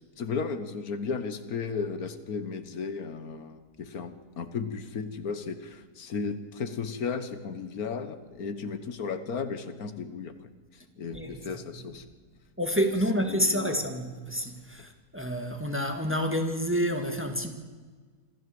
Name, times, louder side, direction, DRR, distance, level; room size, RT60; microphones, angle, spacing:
voice 1, 0.2-10.3 10.7-12.0 13.3-13.8, left 5 dB, 75° left, 1.7 m, -34 dB
voice 2, 11.1-11.6 12.6-17.5, equal, 10° right, 1.8 m, -29 dB
26.0 x 13.5 x 7.8 m
omnidirectional pair, 1.6 m